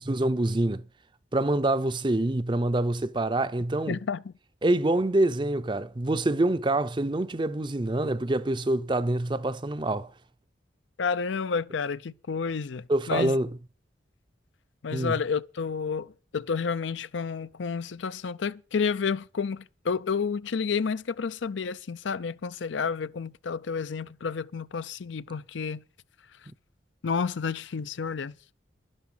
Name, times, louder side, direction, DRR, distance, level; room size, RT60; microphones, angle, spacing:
voice 1, 0.1-0.9 1.3-4.0 4.6-10.1 12.9-13.5 14.9-15.2, right 2 dB, 25° right, 0.5 m, -26 dB
voice 2, 3.9-4.3 11.0-13.4 14.8-25.8 27.0-28.4, left 5 dB, 80° left, 0.5 m, -30 dB
12.0 x 11.5 x 5.5 m
head